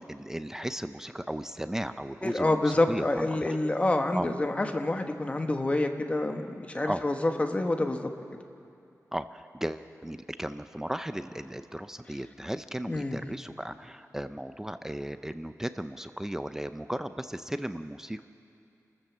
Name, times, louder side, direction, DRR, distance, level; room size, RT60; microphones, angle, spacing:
voice 1, 0.0-3.6 4.1-4.3 6.9-7.0 9.1-18.3, right 1 dB, 10° right, 10 dB, 0.5 m, -36 dB
voice 2, 2.2-8.1 12.9-13.3, left 2 dB, 20° left, 5 dB, 1.3 m, -27 dB
27.5 x 14.0 x 7.4 m, 2.6 s
wide cardioid pair, 160°, 6 cm